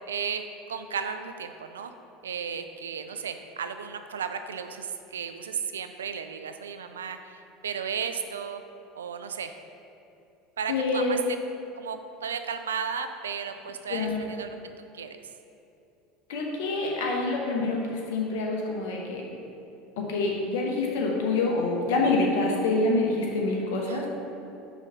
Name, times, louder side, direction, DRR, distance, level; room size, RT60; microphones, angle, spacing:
voice 1, 0.1-1.9 2.2-8.6 8.9-9.5 10.6-11.2 11.7-14.5 14.9-15.2 23.9-24.1, right 6 dB, 85° right, 8 dB, 0.3 m, -34 dB
voice 2, 10.7-11.2 13.9-14.2 16.3-19.2 20.0-24.1, left 3 dB, 70° left, -1 dB, 1.0 m, -26 dB
5.0 x 4.0 x 5.5 m, 2.7 s
hypercardioid pair, 80°, 0 cm